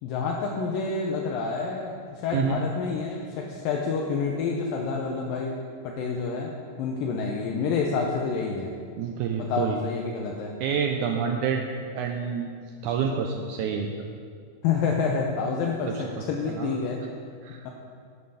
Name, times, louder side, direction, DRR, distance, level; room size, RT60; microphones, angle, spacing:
voice 1, 0.0-6.5 6.8-8.7 9.4-10.5 14.6-17.0, left 5 dB, 80° left, 0 dB, 2.4 m, -28 dB
voice 2, 9.0-9.8 10.6-11.6 11.9-12.5 12.8-13.9 15.9-16.2 16.5-16.7 17.4-17.6, right 6 dB, 90° right, 3 dB, 1.7 m, -28 dB
11.5 x 7.7 x 5.7 m, 2.2 s
omnidirectional pair, 4.3 m